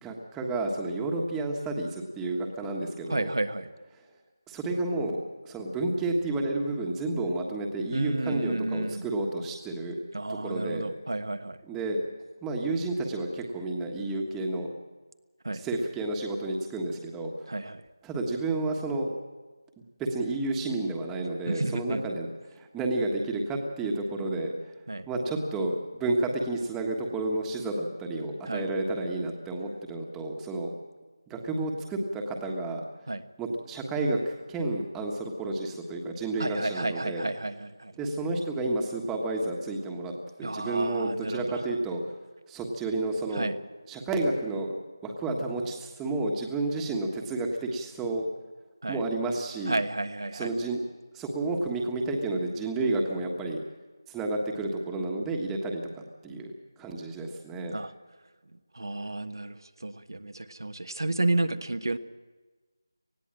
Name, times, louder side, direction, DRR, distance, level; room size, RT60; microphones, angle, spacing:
voice 1, 0.0-3.3 4.5-5.2 5.4-10.0 10.3-10.8 11.6-12.0 12.4-14.7 15.6-17.5 18.0-19.1 20.0-22.3 22.5-24.5 25.1-30.7 31.3-32.8 33.4-37.3 38.0-40.1 40.4-42.0 42.5-43.5 43.9-44.8 45.0-48.2 48.9-49.8 50.3-50.8 51.1-53.6 54.1-55.8 56.2-57.7, right 2 dB, 5° right, 1 dB, 1.4 m, -31 dB
voice 2, 3.1-3.7 7.9-9.1 10.1-11.6 15.4-15.6 17.5-17.8 21.5-22.1 24.9-25.1 28.4-28.7 33.1-33.2 36.4-37.9 40.4-41.6 43.3-43.6 48.8-49.0 49.7-50.5 57.7-57.9 58.7-62.0, right 2 dB, 75° right, 8 dB, 1.3 m, -31 dB
19.5 x 15.0 x 8.9 m, 1.3 s
figure-of-eight pair, 170°, 2 cm